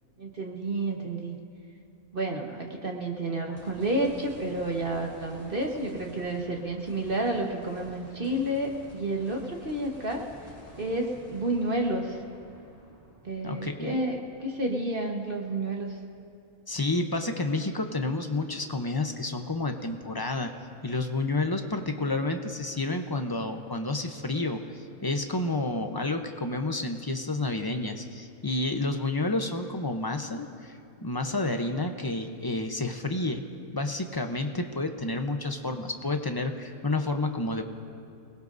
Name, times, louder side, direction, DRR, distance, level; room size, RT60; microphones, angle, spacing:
voice 1, 0.2-1.4 2.1-10.2 10.8-12.2 13.2-16.0, right 1 dB, 40° right, 0 dB, 1.5 m, -30 dB
sound 1, 3.6-15.9 16.3-16.4 19.8-19.9, equal, 10° right, 4.0 m, -51 dB
voice 2, 13.4-14.0 16.7-20.5 20.8-33.4 33.7-37.6, left 2 dB, 20° left, 5 dB, 0.6 m, -30 dB
28.0 x 19.5 x 2.7 m, 2.4 s
omnidirectional pair, 1.5 m